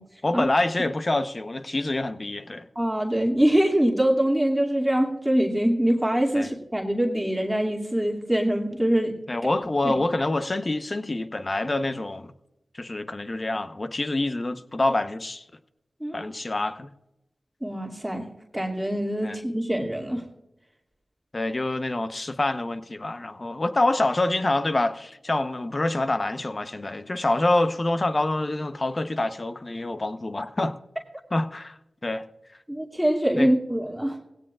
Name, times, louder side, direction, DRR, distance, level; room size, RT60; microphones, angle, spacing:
voice 1, 0.2-2.7 6.3-6.5 9.3-12.3 12.7-15.4 16.1-16.9 19.2-19.4 21.3-30.7 31.3-32.2 33.3-33.5, left 2 dB, 40° left, 0.9 m, -26 dB
voice 2, 2.8-9.2 9.8-10.0 16.0-16.3 17.6-18.2 18.5-20.2 32.7-34.2, right 1 dB, 5° right, 2.4 m, -24 dB
18.5 x 16.5 x 2.4 m
cardioid pair, 45°, 0 cm